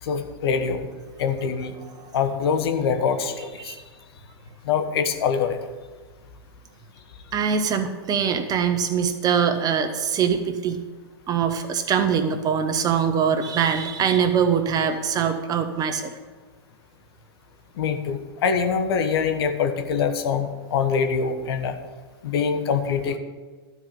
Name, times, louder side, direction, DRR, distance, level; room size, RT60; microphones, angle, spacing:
voice 1, 0.0-0.9 1.2-1.8 2.1-3.8 4.6-5.6 17.7-21.8 22.2-23.2, left 6 dB, 65° left, 7 dB, 1.2 m, -24 dB
voice 2, 7.3-10.8 11.3-16.1, right 7 dB, 25° right, 7 dB, 1.0 m, -23 dB
12.0 x 4.8 x 8.5 m, 1.4 s
hypercardioid pair, 110°, 14 cm